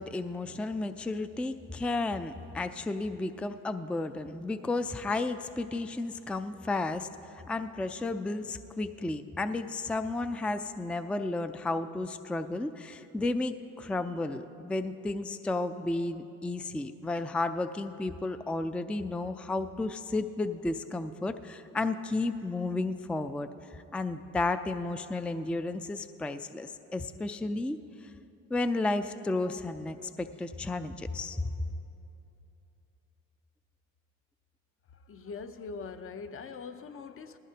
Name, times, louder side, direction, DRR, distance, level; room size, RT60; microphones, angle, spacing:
voice 1, 0.0-7.1 7.5-27.8 28.5-31.5, left 2 dB, 5° left, 10 dB, 0.3 m, -33 dB
voice 2, 35.1-37.4, left 5 dB, 45° left, 10 dB, 0.7 m, -42 dB
19.5 x 14.5 x 2.9 m, 2.9 s
cardioid pair, 90°, 30 cm